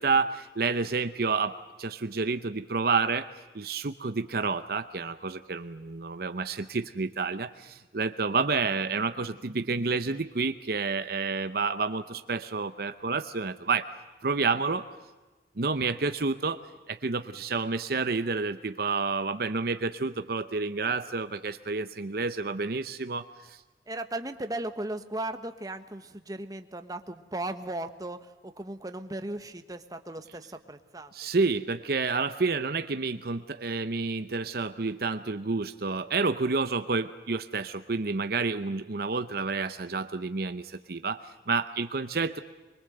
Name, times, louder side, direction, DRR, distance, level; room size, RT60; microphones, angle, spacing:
voice 1, 0.0-3.3 3.5-13.9 14.2-14.9 15.6-16.6 16.9-23.6 31.1-42.4, right 4 dB, 55° right, 10 dB, 0.8 m, -29 dB
voice 2, 23.9-31.1, right 1 dB, 20° right, 8 dB, 1.2 m, -36 dB
23.5 x 23.0 x 7.9 m, 1.2 s
head